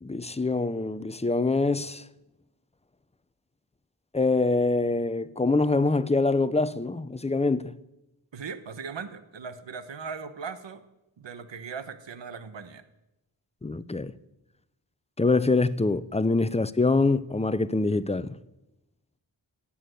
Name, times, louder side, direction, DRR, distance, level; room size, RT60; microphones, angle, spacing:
voice 1, 0.0-2.0 4.1-7.7 13.6-14.1 15.2-18.3, left 3 dB, 15° left, 0.6 m, -25 dB
voice 2, 8.3-10.8 11.2-12.8, right 5 dB, 80° right, 1.3 m, -39 dB
16.0 x 8.7 x 9.3 m
wide cardioid pair, 105°, 43 cm